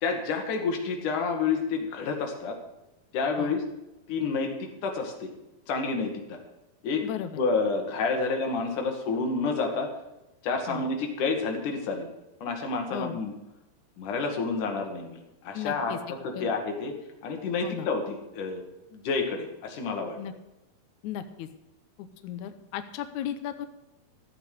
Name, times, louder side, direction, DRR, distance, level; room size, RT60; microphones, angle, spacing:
voice 1, 0.0-2.6 3.1-3.6 4.1-5.3 5.7-6.4 6.8-7.1 7.4-9.9 10.4-12.1 12.4-13.3 14.0-17.0 17.2-18.6 18.9-20.2, left 4 dB, 60° left, 3 dB, 3.0 m, -29 dB
voice 2, 7.0-7.4 10.7-10.8 12.9-13.2 15.5-16.0 16.3-16.5 17.6-17.9 20.2-20.3 21.0-21.5 22.0-23.7, left 10 dB, 85° left, 9 dB, 1.7 m, -35 dB
14.0 x 7.9 x 6.7 m, 0.97 s
omnidirectional pair, 4.5 m